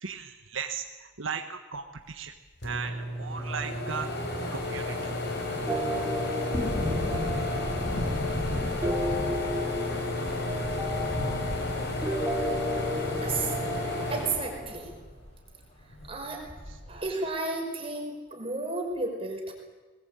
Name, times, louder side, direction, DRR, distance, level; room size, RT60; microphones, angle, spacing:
voice 1, 0.0-2.3 2.6-4.1 4.5-5.0, right 6 dB, 85° right, 5 dB, 1.4 m, -36 dB
sound 1, 2.3-2.4 2.6-15.2 15.6-16.8, left 2 dB, 60° left, 4.9 m, -33 dB
sound 2, 5.7-14.8, left 1 dB, 10° right, 3.9 m, -34 dB
sound 3, 6.5-15.4 15.6-15.7 16.0-17.0 17.3-17.4, left 1 dB, 30° left, 4.6 m, -36 dB
voice 2, 13.2-14.9 16.0-16.5 16.9-19.5, right 3 dB, 30° right, 1 dB, 5.4 m, -33 dB
21.0 x 20.5 x 9.1 m, 1.3 s
head